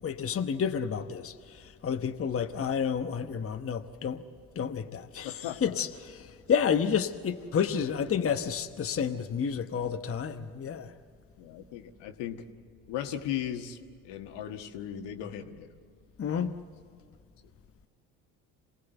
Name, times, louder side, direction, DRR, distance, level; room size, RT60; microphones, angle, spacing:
voice 1, 0.0-4.2 4.5-10.9 16.2-16.5, left 7 dB, 30° left, 1.0 m, -30 dB
voice 2, 5.2-5.7 11.4-12.4 12.9-13.8 14.0-15.7 16.3-16.4, left 10 dB, 65° left, 1.6 m, -37 dB
26.5 x 18.0 x 8.1 m
hypercardioid pair, 55°, 45 cm